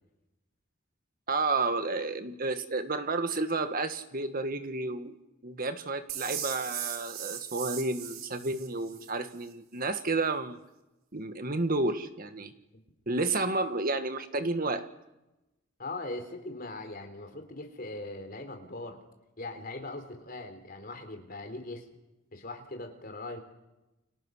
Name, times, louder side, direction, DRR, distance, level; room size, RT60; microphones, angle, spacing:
voice 1, 1.3-5.2 5.4-10.6 11.1-12.5 13.1-14.9, right 3 dB, 45° right, 9 dB, 1.6 m, -31 dB
sound 1, 6.1-9.1, right 10 dB, 85° right, 2.5 m, -38 dB
voice 2, 15.8-19.0 19.4-21.9 22.3-23.4, left 2 dB, 45° left, 5 dB, 3.6 m, -40 dB
29.5 x 25.0 x 6.4 m, 0.99 s
head